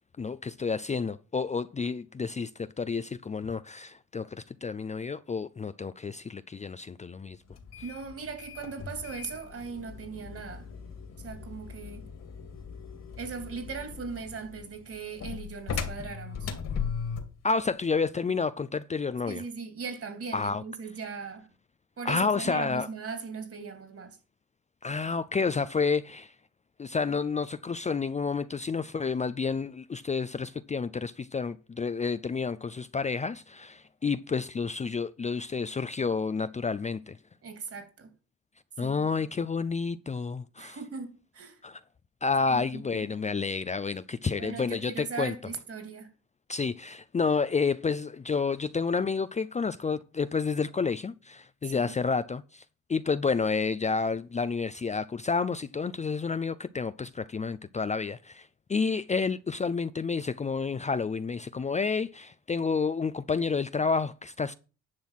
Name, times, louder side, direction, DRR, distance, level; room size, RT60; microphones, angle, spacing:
voice 1, 0.2-7.4 17.4-19.4 20.3-20.6 22.0-22.9 24.8-26.3 26.8-37.2 38.8-40.8 41.6-41.8 42.2-45.3 46.5-52.6 52.9-64.5, left 5 dB, 25° left, 0.5 m, -30 dB
sound 1, 7.5-17.4, left 6 dB, 55° left, 2.6 m, -38 dB
voice 2, 7.8-10.7 11.2-12.0 13.2-16.5 19.3-21.5 22.0-24.2 37.4-38.1 38.8-39.0 40.6-41.6 42.5-43.1 44.4-46.1 51.6-51.9, right 5 dB, 50° right, 3.1 m, -39 dB
10.5 x 6.2 x 5.8 m
cardioid pair, 90°, 30 cm